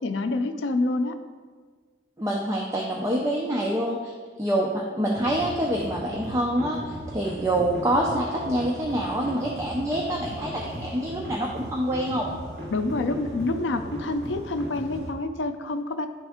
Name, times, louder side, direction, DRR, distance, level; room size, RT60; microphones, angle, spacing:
voice 1, 0.0-1.2 12.7-16.1, left 2 dB, 75° left, 8 dB, 0.5 m, -27 dB
voice 2, 2.2-4.1 4.4-12.3, right 1 dB, 15° right, -2 dB, 0.5 m, -26 dB
sound 1, 5.1-15.1, equal, 60° right, 1.1 m, -37 dB
10.5 x 3.5 x 3.5 m, 1.5 s
head